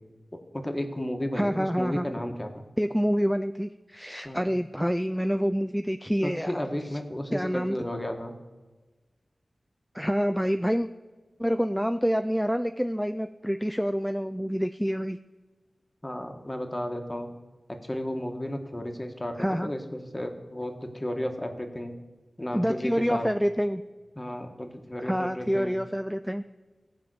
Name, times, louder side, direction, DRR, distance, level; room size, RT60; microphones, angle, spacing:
voice 1, 0.3-2.6 4.2-4.4 6.2-8.4 16.0-17.3 17.8-21.9 22.4-23.3 24.2-25.8, left 1 dB, 20° left, 4 dB, 1.4 m, -33 dB
voice 2, 1.3-2.1 2.8-6.6 7.3-7.8 9.9-10.9 11.4-15.2 19.4-19.7 22.5-23.8 25.0-26.4, equal, ahead, 8 dB, 0.4 m, -27 dB
14.5 x 5.2 x 7.8 m, 1.3 s
wide cardioid pair, 60°, 0 cm